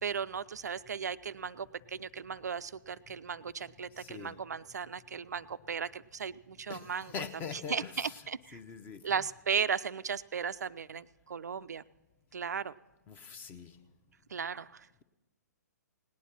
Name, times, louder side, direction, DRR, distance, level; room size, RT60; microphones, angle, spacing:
voice 1, 0.0-7.1 7.7-8.6 9.0-11.8 12.3-12.7 14.3-14.9, right 6 dB, 70° right, 15 dB, 0.3 m, -36 dB
voice 2, 3.9-4.4 6.7-9.2 13.1-13.8, left 6 dB, 20° left, 11 dB, 0.7 m, -43 dB
17.5 x 9.5 x 5.7 m, 1.0 s
figure-of-eight pair, 125°, 9 cm